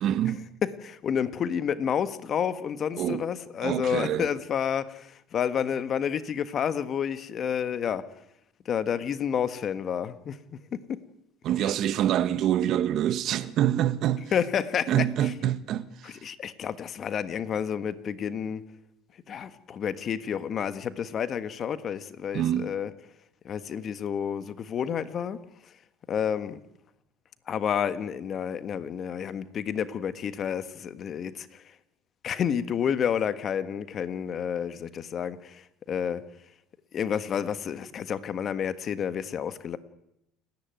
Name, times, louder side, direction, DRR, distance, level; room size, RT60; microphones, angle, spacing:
voice 1, 0.0-0.5 3.0-3.2 3.6-4.3 11.4-14.3 14.9-16.2 22.3-22.7, right 11 dB, 55° right, 1.1 m, -26 dB
voice 2, 0.6-8.1 8.6-11.0 14.3-15.0 16.0-18.6 19.3-22.9 23.4-25.4 26.1-26.6 27.5-31.6 32.2-36.2 36.9-39.8, left 8 dB, 45° left, 1.4 m, -30 dB
29.5 x 10.5 x 9.3 m
supercardioid pair, 90°, 0 cm